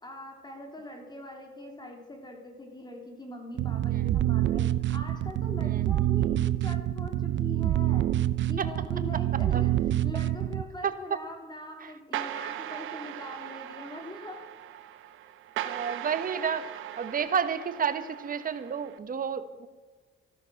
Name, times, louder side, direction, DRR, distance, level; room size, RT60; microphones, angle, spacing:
voice 1, 0.0-4.6 4.9-8.1 8.5-14.4, left 1 dB, 20° left, 2 dB, 3.3 m, -42 dB
sound 1, 3.6-10.6, right 13 dB, 65° right, 0.6 m, -26 dB
voice 2, 10.8-11.2 11.8-11.9 15.6-16.6 17.0-19.7, right 7 dB, 45° right, 11 dB, 1.3 m, -30 dB
sound 2, 12.1-19.0, right 12 dB, 90° right, 0.9 m, -39 dB
14.0 x 12.0 x 6.4 m, 1.3 s
cardioid pair, 90°, 20 cm